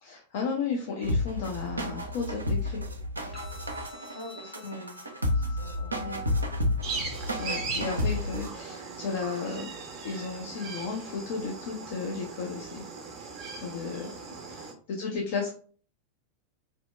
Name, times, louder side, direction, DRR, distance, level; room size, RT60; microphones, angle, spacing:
voice 1, 0.0-2.8 4.6-4.8 6.0-6.2 7.4-9.7 10.0-12.8 13.6-14.1 14.5-15.5, left 5 dB, 50° left, 0 dB, 0.4 m, -34 dB
sound 1, 1.0-8.5, left 1 dB, 80° right, 0.3 m, -31 dB
sound 2, 3.3-11.3, left 5 dB, 10° left, 0.7 m, -53 dB
voice 2, 4.1-6.1 14.0-14.5 15.0-15.3, equal, 85° left, -6 dB, 1.2 m, -47 dB
sound 3, 6.8-14.7, right 4 dB, 35° right, 0.5 m, -39 dB
2.7 x 2.1 x 2.2 m, 0.42 s
figure-of-eight pair, 90°, 0 cm